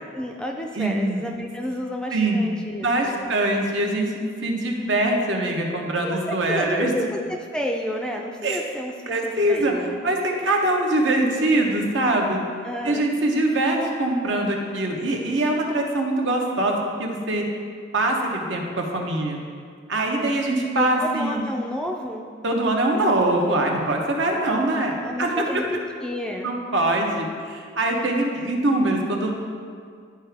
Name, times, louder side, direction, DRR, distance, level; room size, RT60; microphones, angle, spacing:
voice 1, 0.1-3.3 6.0-10.0 12.6-13.1 20.0-20.4 20.7-22.3 24.3-25.6 26.0-26.5, left 1 dB, 5° left, 1 dB, 0.4 m, -31 dB
voice 2, 0.8-1.2 2.1-2.5 2.8-4.1 4.4-6.9 8.4-8.6 9.1-9.7 10.0-12.4 12.8-17.5 17.9-19.4 19.9-21.4 22.4-25.3 26.4-29.3, right 1 dB, 70° right, 1 dB, 1.0 m, -23 dB
10.5 x 4.7 x 3.5 m, 2.1 s
head